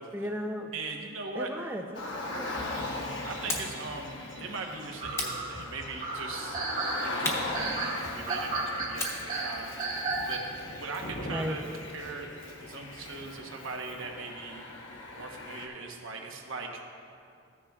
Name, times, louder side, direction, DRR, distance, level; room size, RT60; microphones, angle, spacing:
voice 1, 0.1-0.7 1.3-3.0 11.3-11.6, equal, 10° right, 4 dB, 0.5 m, -36 dB
voice 2, 0.7-1.5 3.2-6.6 7.0-10.0 10.3-10.4 10.7-12.3 12.6-14.6 15.2-16.8, right 3 dB, 70° right, 2 dB, 1.1 m, -40 dB
Car, 1.9-15.7, left 2 dB, 60° left, 1.1 m, -39 dB
sound 1, 2.6-10.8 11.0-11.4 12.0-12.1 12.6-12.8, right 3 dB, 40° right, 1.4 m, -35 dB
sound 2, 3.5-3.8 5.1-6.1 7.2-8.4 9.0-11.2, left 2 dB, 15° left, 1.0 m, -37 dB
14.5 x 9.8 x 2.4 m, 2.4 s
head